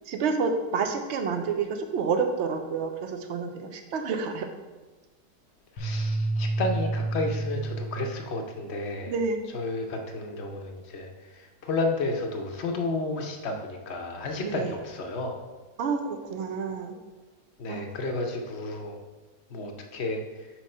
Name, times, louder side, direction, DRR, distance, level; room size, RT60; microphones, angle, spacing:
voice 1, 0.1-4.5 9.1-9.4 14.4-14.7 15.8-16.9 17.7-17.8, right 5 dB, 70° right, 6 dB, 0.6 m, -29 dB
sound 1, 5.8-8.3, right 2 dB, 85° left, 1.5 m, -29 dB
voice 2, 5.8-9.1 9.5-15.4 17.6-19.0 19.5-20.5, left 2 dB, 55° left, 3 dB, 0.8 m, -32 dB
4.5 x 4.4 x 5.4 m, 1.2 s
omnidirectional pair, 1.8 m